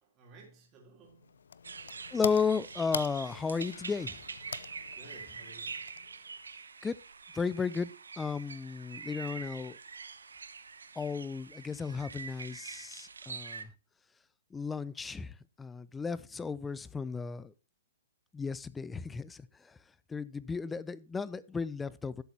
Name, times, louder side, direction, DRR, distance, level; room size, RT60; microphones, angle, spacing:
voice 1, 0.0-1.3 4.9-5.8, right 3 dB, 25° right, 3.4 m, -56 dB
sound 1, 1.0-6.4, left 6 dB, 75° left, 0.6 m, -44 dB
sound 2, 1.6-13.6, right 5 dB, 85° right, 1.0 m, -45 dB
voice 2, 2.1-4.2 6.8-7.0 7.3-7.9 8.2-9.8 11.0-13.7 14.5-17.5 18.3-19.8 20.1-22.2, left 5 dB, 10° left, 0.5 m, -34 dB
12.0 x 7.9 x 2.9 m
hypercardioid pair, 130°, 0 cm